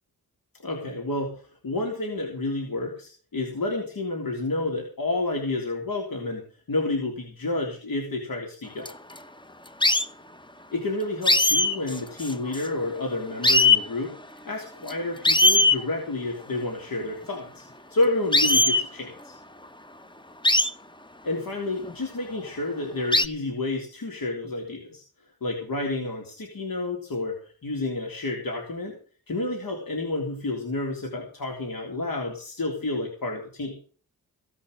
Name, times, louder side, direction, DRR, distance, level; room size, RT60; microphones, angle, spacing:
voice 1, 0.6-1.3 1.6-8.9 10.7-17.6 17.9-19.4 21.2-25.0 25.4-29.0 29.3-33.7, left 2 dB, 65° left, 1 dB, 3.6 m, -30 dB
sound 1, 8.9-9.2 9.8-10.1 11.2-12.8 13.1-13.2 13.4-13.8 14.9-15.0 15.2-15.8 18.3-18.9 20.4-20.7 21.8-21.9 23.1-23.3, left 2 dB, 15° left, 1.0 m, -20 dB
17.0 x 5.8 x 8.1 m, 0.41 s
cardioid pair, 65°, 37 cm